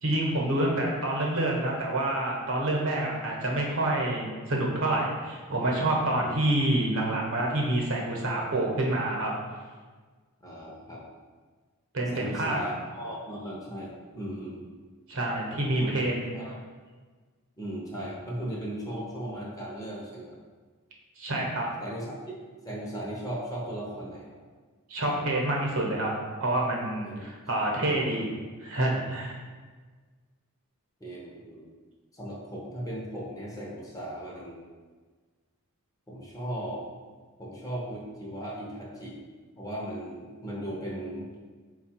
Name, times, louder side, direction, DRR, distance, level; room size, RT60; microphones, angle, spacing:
voice 1, 0.0-9.3 11.9-12.6 15.1-16.3 21.2-21.6 24.9-26.1 26.4-28.3 28.6-29.4, right 1 dB, 60° right, -1 dB, 0.9 m, -27 dB
voice 2, 10.4-11.0 12.1-14.6 15.8-16.0 16.3-16.5 17.6-20.3 21.8-22.2 22.6-24.3 27.0-27.2 31.0-31.7 32.1-34.6 36.1-36.8 37.4-39.2 39.6-41.3, right 1 dB, 15° left, -4 dB, 0.7 m, -37 dB
4.4 x 2.3 x 4.4 m, 1.4 s
head